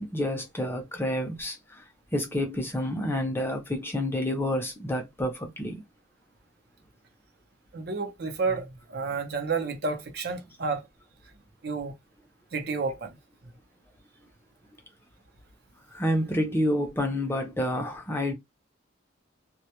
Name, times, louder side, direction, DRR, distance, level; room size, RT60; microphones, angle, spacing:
voice 1, 0.0-1.8 2.1-5.8 15.9-18.3, left 1 dB, 10° left, 0.5 m, -29 dB
voice 2, 7.7-10.8 11.6-11.9 12.5-13.1, right 4 dB, 50° right, 0.6 m, -30 dB
2.1 x 2.1 x 2.8 m
head